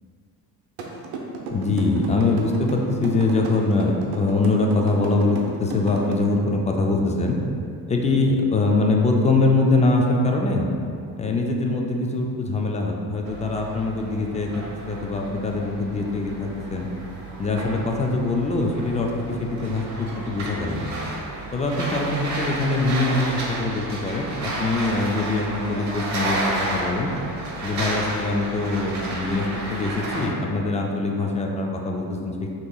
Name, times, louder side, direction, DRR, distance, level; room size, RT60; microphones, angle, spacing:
sound 1, 0.8-6.1, right 4 dB, 75° right, 0.8 m, -33 dB
voice 1, 1.5-7.4 7.9-10.7 11.2-14.5 14.9-16.9 17.4-19.1 19.4-20.9 21.5-27.1 27.6-32.5, left 2 dB, 15° left, 1 dB, 0.3 m, -23 dB
sound 2, 13.2-30.3, right 2 dB, 40° right, 0.9 m, -31 dB
6.4 x 2.9 x 2.3 m, 2.4 s
supercardioid pair, 95°, 45 cm